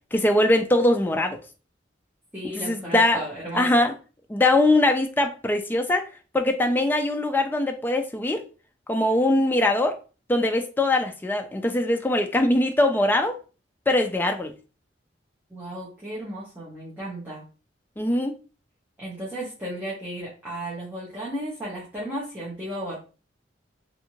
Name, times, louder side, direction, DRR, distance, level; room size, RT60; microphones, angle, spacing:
voice 1, 0.1-1.4 2.4-3.2 3.5-3.9 4.3-6.1 6.3-8.4 8.9-10.0 10.3-13.4 13.9-14.5 18.0-18.3, left 1 dB, 10° left, 0.3 m, -22 dB
voice 2, 2.3-3.8 15.5-17.4 19.0-23.0, right 1 dB, 10° right, 0.8 m, -34 dB
2.6 x 2.5 x 2.9 m
head